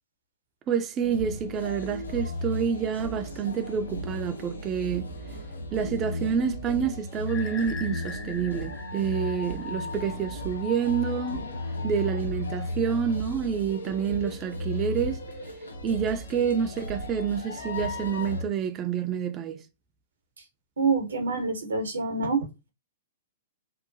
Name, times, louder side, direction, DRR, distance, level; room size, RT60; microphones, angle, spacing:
voice 1, 0.7-5.1 5.7-11.4 11.8-15.2 15.8-19.6, right 7 dB, 30° right, 0.4 m, -28 dB
sound 1, 1.0-18.4, left 1 dB, 90° left, 0.5 m, -35 dB
sound 2, 7.3-10.1, left 4 dB, 20° left, 0.7 m, -42 dB
voice 2, 20.8-22.5, right 4 dB, 85° right, 0.8 m, -26 dB
2.7 x 2.1 x 2.5 m
hypercardioid pair, 120°, 0 cm